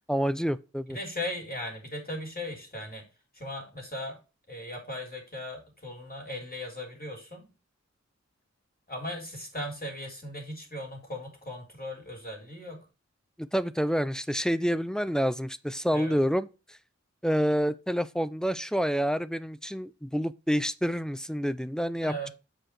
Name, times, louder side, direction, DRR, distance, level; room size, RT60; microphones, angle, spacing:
voice 1, 0.1-1.0 13.4-16.5 17.2-22.1, equal, ahead, 0.5 m, -28 dB
voice 2, 0.9-3.0 3.3-4.2 4.5-7.5 8.9-12.9 15.9-16.2 22.0-22.3, left 1 dB, 30° left, 3.2 m, -38 dB
7.8 x 5.0 x 4.4 m
wide cardioid pair, 55°, 29 cm